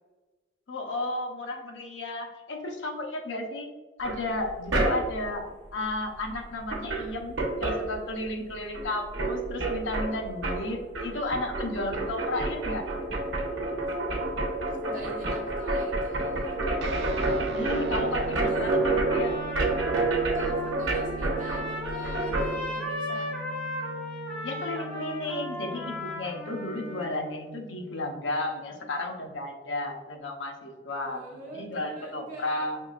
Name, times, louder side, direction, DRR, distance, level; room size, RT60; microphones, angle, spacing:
voice 1, 0.7-3.7 4.0-12.9 17.5-19.4 24.4-31.2 31.5-32.8, left 2 dB, 80° left, 2 dB, 0.8 m, -33 dB
sound 1, 4.0-5.3 6.3-6.4 6.6-8.5 8.7-22.5, right 2 dB, 85° right, 0.9 m, -29 dB
voice 2, 14.7-16.6 18.5-18.7 20.3-23.3 31.0-32.6, right 1 dB, 45° right, -3 dB, 1.1 m, -44 dB
sound 2, 16.8-28.0, right 2 dB, 60° right, 0.3 m, -40 dB
Trumpet, 18.8-27.3, left 1 dB, 5° left, 1.0 m, -36 dB
5.6 x 3.1 x 2.4 m, 1.3 s
head